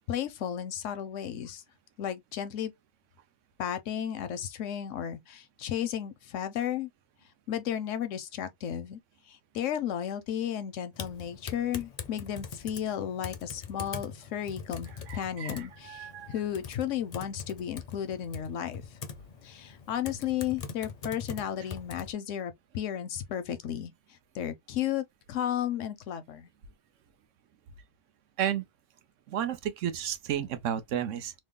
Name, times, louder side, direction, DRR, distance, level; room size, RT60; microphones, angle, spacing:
voice 1, 0.1-1.6 2.0-2.7 3.6-6.9 7.5-9.0 9.3-18.8 19.4-26.5, left 10 dB, 85° left, 1.0 m, -34 dB
Typing, 10.9-22.1, left 6 dB, 50° left, 0.5 m, -43 dB
voice 2, 15.1-16.3 28.4-28.6 29.3-31.3, right 10 dB, 85° right, 1.0 m, -32 dB
3.1 x 2.0 x 3.6 m
omnidirectional pair, 1.3 m